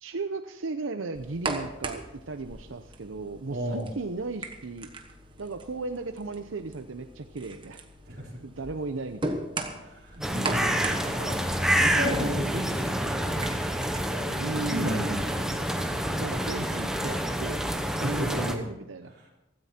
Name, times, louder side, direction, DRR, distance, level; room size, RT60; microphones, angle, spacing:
voice 1, 0.0-4.9 5.4-7.8 8.4-9.4 14.4-15.0 16.2-17.7 18.0-19.1, right 3 dB, 90° right, 8 dB, 0.7 m, -36 dB
sound 1, 1.1-17.6, right 2 dB, 25° right, 1.2 m, -40 dB
voice 2, 3.5-3.9 8.1-8.3 9.8-11.4 11.8-13.5 14.1-15.4 18.0-18.5 19.1-19.3, equal, 50° right, -3 dB, 4.2 m, -33 dB
sound 2, 10.2-18.6, equal, 5° right, 1.0 m, -28 dB
16.0 x 14.0 x 4.4 m, 0.93 s
head